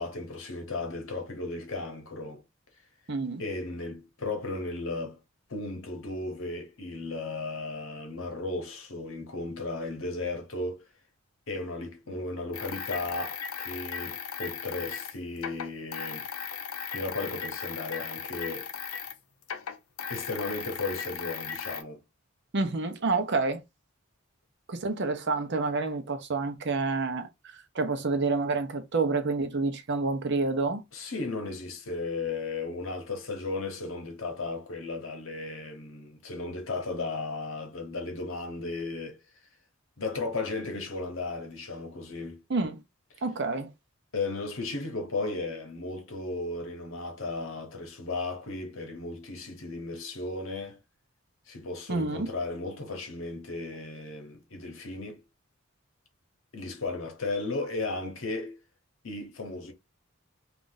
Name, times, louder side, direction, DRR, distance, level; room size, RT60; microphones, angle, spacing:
voice 1, 0.0-2.4 3.4-5.2 5.5-10.8 11.5-16.3 16.9-18.7 20.1-22.0 30.9-39.2 40.0-42.4 44.1-50.8 51.5-55.2 56.5-58.6 59.0-59.7, left 3 dB, 65° left, 0.9 m, -35 dB
voice 2, 3.1-3.4 22.5-23.6 24.7-30.8 42.5-42.8 43.2-43.7 51.9-52.3, right 3 dB, 55° right, 0.6 m, -28 dB
sound 1, 12.5-19.2 19.4-21.8, left 7 dB, 90° left, 0.6 m, -37 dB
2.6 x 2.4 x 3.8 m
head